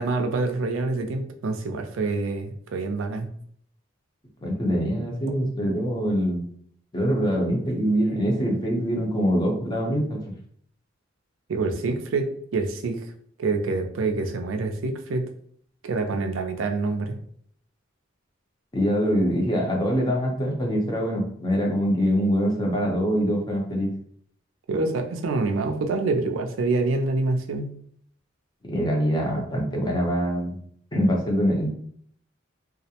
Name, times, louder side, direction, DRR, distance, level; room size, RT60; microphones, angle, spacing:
voice 1, 0.0-3.3 11.5-13.1 13.4-15.3 15.8-17.2 24.7-27.7, right 3 dB, 85° right, 5 dB, 0.4 m, -26 dB
voice 2, 4.4-6.4 6.9-10.2 18.7-23.9 28.7-30.6 30.9-31.7, equal, 20° left, -1 dB, 0.6 m, -24 dB
2.3 x 2.0 x 2.8 m, 0.62 s
head